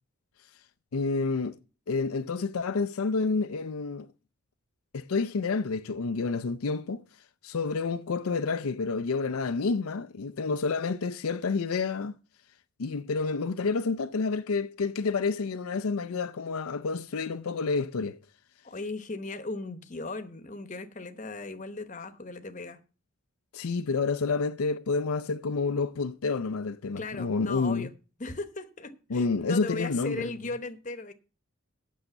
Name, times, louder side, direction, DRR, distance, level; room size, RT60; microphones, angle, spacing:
voice 1, 0.9-1.6 1.9-4.1 4.9-7.0 7.4-12.1 12.8-18.2 23.5-27.9 29.1-30.3, left 4 dB, 80° left, 0.5 m, -29 dB
voice 2, 18.6-22.8 27.0-27.9 28.2-31.1, left 3 dB, 35° left, 1.0 m, -37 dB
8.4 x 6.4 x 7.8 m
head